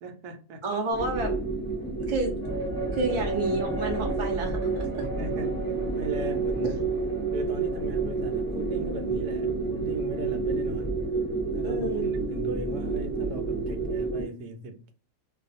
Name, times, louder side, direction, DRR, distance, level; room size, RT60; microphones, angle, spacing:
voice 1, 0.0-0.6 5.0-5.7 6.0-6.8 7.3-11.1 11.5-14.9, right 2 dB, 80° right, 1.1 m, -38 dB
voice 2, 0.6-1.4 2.1-2.4 2.9-5.0 11.6-12.0, right 2 dB, 35° right, 0.5 m, -29 dB
sound 1, 0.9-14.2, right 3 dB, 15° left, 0.6 m, -29 dB
2.4 x 2.4 x 2.5 m
omnidirectional pair, 1.6 m